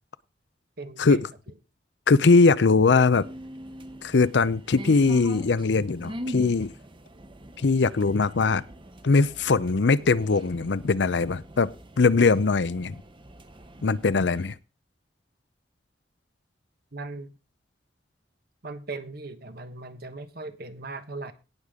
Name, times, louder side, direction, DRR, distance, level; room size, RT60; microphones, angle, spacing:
voice 1, 0.8-1.2 16.9-17.3 18.6-21.3, right 3 dB, 60° right, 1.3 m, -38 dB
voice 2, 2.1-3.3 4.0-6.7 7.6-8.6 9.0-11.7 12.0-13.0 13.8-14.5, left 4 dB, 80° left, 0.6 m, -21 dB
sound 1, 3.2-14.5, equal, 30° right, 1.0 m, -43 dB
18.0 x 6.7 x 3.7 m
head